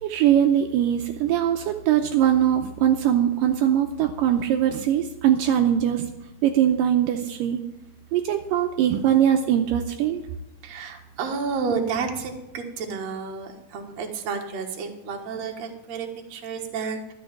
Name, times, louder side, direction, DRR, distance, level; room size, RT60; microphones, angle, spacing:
voice 1, 0.0-6.1 6.4-7.6 8.1-10.2, right 10 dB, 80° right, 5 dB, 2.4 m, -21 dB
voice 2, 10.6-17.1, right 5 dB, 55° right, 3 dB, 2.4 m, -31 dB
12.5 x 6.7 x 8.9 m, 0.92 s
omnidirectional pair, 4.0 m